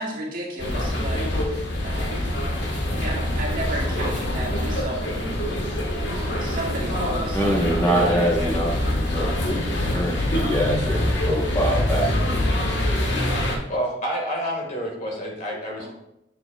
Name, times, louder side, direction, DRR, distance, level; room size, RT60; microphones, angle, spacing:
voice 1, 0.0-2.3 2.9-8.6 15.8-15.9, right 1 dB, 50° right, -3 dB, 1.9 m, -34 dB
sound 1, 0.6-13.6, left 1 dB, 80° left, 1.5 m, -25 dB
voice 2, 7.3-8.7 9.1-11.0 11.2-12.5, right 1 dB, 20° left, -3 dB, 1.2 m, -24 dB
voice 3, 13.7-15.9, equal, 45° left, 0 dB, 2.0 m, -28 dB
7.7 x 7.6 x 2.4 m, 0.81 s
head